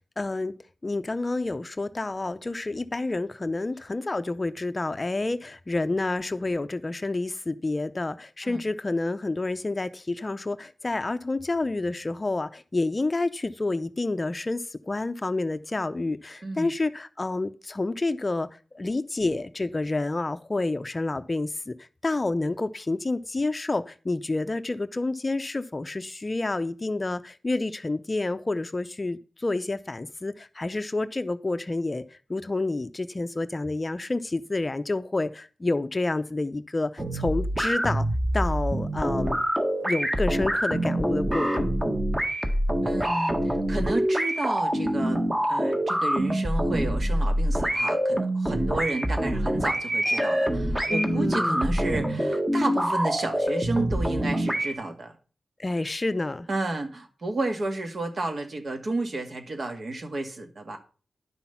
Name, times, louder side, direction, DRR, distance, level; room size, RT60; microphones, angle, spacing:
voice 1, 0.2-0.5 0.8-38.1 38.3-39.4 39.8-41.8 50.9-51.7 55.6-56.5, left 2 dB, 30° left, 11 dB, 0.6 m, -29 dB
sound 1, 37.0-54.7, right 1 dB, 20° right, 1.6 m, -26 dB
voice 2, 42.8-45.2 45.5-55.1 56.5-60.8, right 2 dB, 55° right, 5 dB, 2.0 m, -31 dB
10.5 x 6.0 x 5.7 m, 0.37 s
wide cardioid pair, 100°, 0 cm